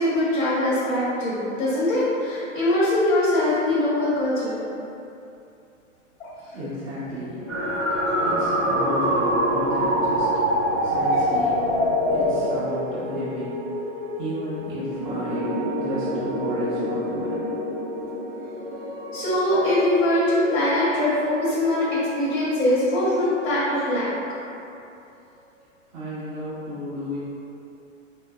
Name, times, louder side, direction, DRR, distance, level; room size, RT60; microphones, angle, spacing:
voice 1, 0.0-4.6 19.1-24.1, left 1 dB, 65° left, -9 dB, 1.1 m, -22 dB
voice 2, 6.5-7.4 7.9-10.3 10.8-13.5 13.8-13.9 14.2-17.5 25.9-27.2, equal, 40° right, -12 dB, 1.3 m, -33 dB
sound 1, 7.3-23.6, equal, 35° left, 1.2 m, -30 dB
sound 2, 7.5-12.5, equal, 5° right, 0.4 m, -24 dB
3.3 x 2.8 x 2.3 m, 2.7 s
hypercardioid pair, 130°, 39 cm